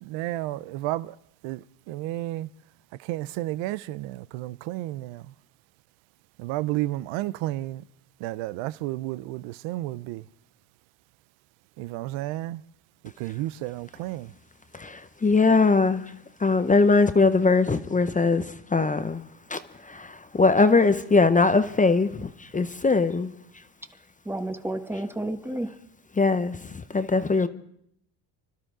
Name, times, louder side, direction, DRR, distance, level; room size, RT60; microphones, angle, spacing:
voice 1, 0.0-1.1 1.4-2.5 3.0-5.3 6.4-7.8 8.2-10.2 11.8-12.6 13.2-14.3, right 16 dB, 90° right, 0.5 m, -32 dB
voice 2, 14.7-16.1 16.4-19.2 19.5-23.3 26.2-27.5, left 3 dB, 20° left, 0.6 m, -21 dB
voice 3, 24.2-25.7, right 1 dB, 5° right, 1.0 m, -31 dB
26.0 x 12.5 x 3.7 m
cardioid pair, 100°, 45 cm